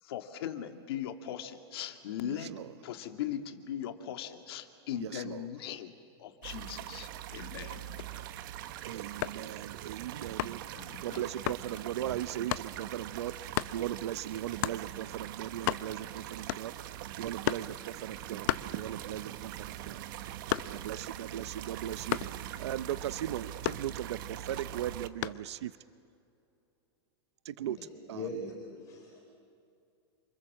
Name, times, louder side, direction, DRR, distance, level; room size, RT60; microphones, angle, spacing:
voice 1, 0.0-2.5 2.8-5.9 6.2-7.8 10.7-11.3, left 10 dB, 65° left, 7 dB, 2.2 m, -39 dB
voice 2, 2.3-2.7 5.0-5.4 8.8-16.7 17.2-20.0 20.7-22.2 22.6-25.7 27.4-27.8 28.1-28.3, right 12 dB, 85° right, 14 dB, 0.8 m, -38 dB
sound 1, 6.4-25.1, right 12 dB, 50° right, 1.1 m, -42 dB
sound 2, 9.2-9.5 10.4-10.7 11.5-11.7 12.5-12.7 13.5-13.8 14.6-14.9 15.3-15.4 15.5-16.1 16.5-16.9 17.4-17.8 18.5-19.2 19.6-21.0 22.1-22.4 23.6-24.3 25.2-25.5, left 16 dB, 45° left, 0.7 m, -33 dB
voice 3, 27.8-29.2, left 2 dB, 25° left, 0 dB, 4.1 m, -41 dB
28.5 x 26.5 x 7.5 m, 2.5 s
supercardioid pair, 170°, 14 cm